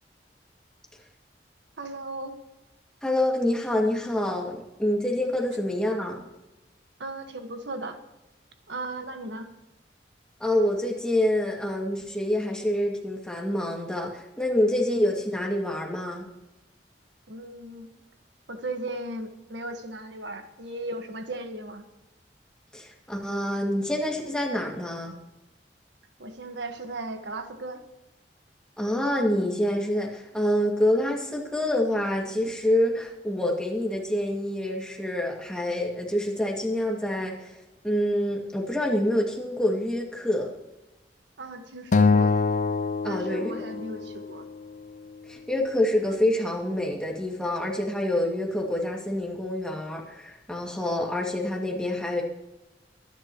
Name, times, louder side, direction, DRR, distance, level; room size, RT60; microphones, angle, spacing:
voice 1, 1.8-2.3 7.0-8.0 8.7-9.5 17.3-17.9 18.5-21.9 26.2-27.8 41.4-42.3 43.0-44.4, right 2 dB, 90° right, 6 dB, 1.5 m, -36 dB
voice 2, 3.0-6.3 10.4-16.3 22.7-25.2 28.8-37.5 37.8-40.5 43.0-43.5 45.3-52.2, left 1 dB, 5° left, -1 dB, 2.2 m, -27 dB
Acoustic guitar, 41.9-44.3, left 4 dB, 45° left, 0.5 m, -24 dB
23.0 x 10.5 x 3.1 m, 0.99 s
head